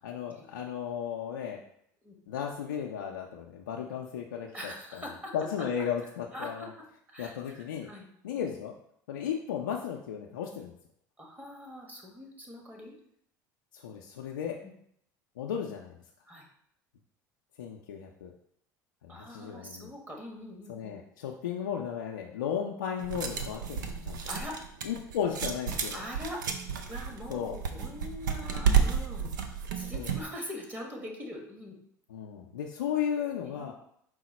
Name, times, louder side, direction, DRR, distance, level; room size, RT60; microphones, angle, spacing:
voice 1, 0.0-1.6 2.3-5.0 5.3-6.7 7.2-7.9 8.2-8.7 9.1-10.7 13.7-14.6 15.4-16.0 17.6-18.3 19.0-19.9 20.7-24.2 24.8-26.0 27.3-27.5 29.9-30.1 32.1-33.7, left 8 dB, 90° left, -1 dB, 0.4 m, -35 dB
voice 2, 4.5-5.3 6.3-6.7 7.1-8.1 11.2-12.9 14.6-14.7 16.3-16.5 19.1-21.0 24.3-24.6 25.9-26.4 26.8-29.3 29.8-31.8 33.4-33.7, left 1 dB, 15° right, 1 dB, 1.1 m, -43 dB
sound 1, 23.0-30.2, right 6 dB, 90° right, 0.4 m, -31 dB
4.6 x 2.1 x 4.1 m, 0.69 s
hypercardioid pair, 75°, 10 cm